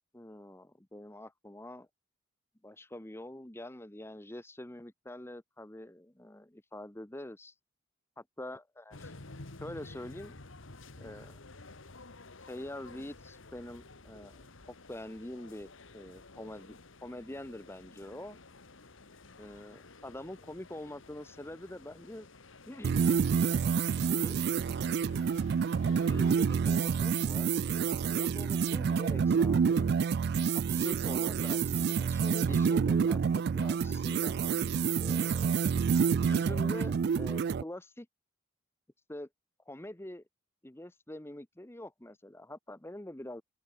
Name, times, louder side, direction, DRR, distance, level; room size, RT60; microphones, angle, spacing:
voice 1, 0.1-1.9 2.6-7.5 8.4-9.1 9.6-10.4 11.0-11.4 12.5-18.4 19.4-22.3 22.7-23.1 23.6-23.8 24.1-24.4 26.0-27.5 28.1-30.0 30.5-34.4 35.0-35.5 36.2-38.1 39.1-39.3 39.7-40.2 40.6-43.4, left 1 dB, 10° left, 1.0 m, -45 dB
sound 1, 8.9-26.5, left 3 dB, 75° left, 1.9 m, -52 dB
sound 2, 22.8-37.6, right 6 dB, 55° right, 0.3 m, -28 dB
open air
head